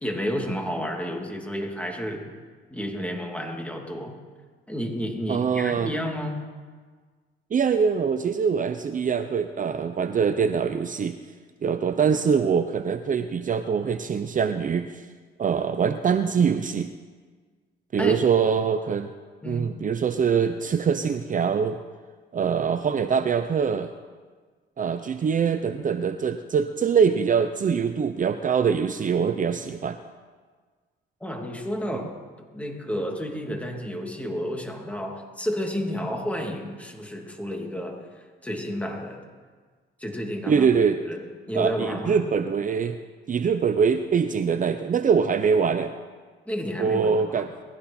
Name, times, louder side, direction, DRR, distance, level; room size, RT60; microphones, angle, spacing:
voice 1, 0.0-2.3 2.7-4.2 4.7-6.4 18.0-18.2 19.4-19.7 31.2-32.1 32.4-38.1 38.4-39.2 40.0-40.7 41.1-42.2 46.5-47.4, equal, 5° left, 1 dB, 3.0 m, -31 dB
voice 2, 5.3-5.9 7.5-11.2 11.6-15.0 15.4-16.9 17.9-19.1 19.5-21.8 22.3-23.9 24.8-30.0 31.9-32.1 40.5-41.0 41.5-43.0 43.3-45.9 46.8-47.5, right 6 dB, 40° right, 9 dB, 0.8 m, -23 dB
20.5 x 15.5 x 4.4 m, 1.5 s
cardioid pair, 90°, 20 cm